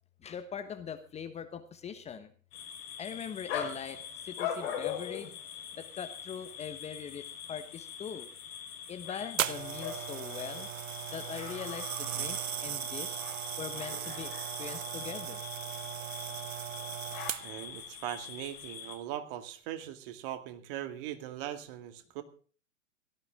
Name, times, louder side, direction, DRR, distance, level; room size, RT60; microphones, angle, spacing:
voice 1, 0.2-2.3 3.0-5.4 5.8-8.3 8.9-10.7 11.1-13.2 13.6-15.4, left 7 dB, 15° left, 9 dB, 1.2 m, -42 dB
sound 1, 2.5-19.0, left 8 dB, 50° left, 4.8 m, -42 dB
sound 2, 9.4-17.7 18.4-18.7, right 10 dB, 70° right, 0.9 m, -37 dB
voice 2, 17.4-22.2, right 12 dB, 40° right, 9 dB, 2.2 m, -40 dB
17.5 x 13.5 x 3.7 m, 0.40 s
hypercardioid pair, 115°, 40 cm